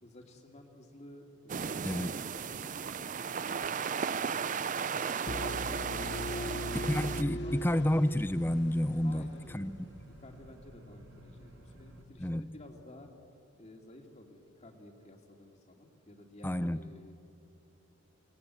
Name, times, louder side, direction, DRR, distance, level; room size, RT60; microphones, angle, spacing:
voice 1, 0.0-5.3 5.8-6.8 7.2-7.7 9.0-9.7 10.1-13.1 13.6-17.1, left 1 dB, 30° left, 3 dB, 2.6 m, -53 dB
sound 1, 1.5-7.2, right 6 dB, 35° right, 0.5 m, -35 dB
sound 2, 5.3-9.1, left 1 dB, 55° left, 0.9 m, -39 dB
sound 3, 5.7-12.0, equal, 70° right, 3.1 m, -54 dB
voice 2, 6.9-9.3 9.5-9.9 12.2-12.5 16.4-16.8, left 1 dB, 10° left, 14 dB, 0.5 m, -30 dB
28.0 x 19.5 x 8.2 m, 2.7 s
head